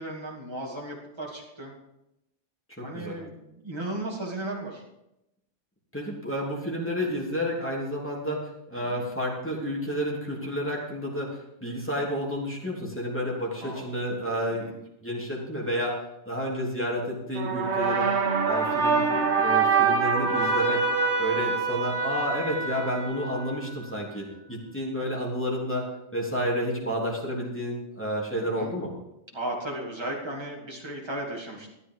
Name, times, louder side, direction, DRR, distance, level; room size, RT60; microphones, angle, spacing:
voice 1, 0.0-1.7 2.8-4.8 8.8-9.0 13.6-13.9 14.5-14.7 18.8-19.0 25.0-25.1 28.3-28.7 29.3-31.7, right 1 dB, 25° right, -2 dB, 2.6 m, -36 dB
voice 2, 2.8-3.2 5.9-14.7 15.0-16.0 16.2-18.1 18.4-20.8 21.2-28.9, equal, 10° left, -3 dB, 3.3 m, -30 dB
sound 1, 17.4-23.7, right 5 dB, 80° right, 1.6 m, -25 dB
14.5 x 11.0 x 4.8 m, 0.85 s
omnidirectional pair, 1.1 m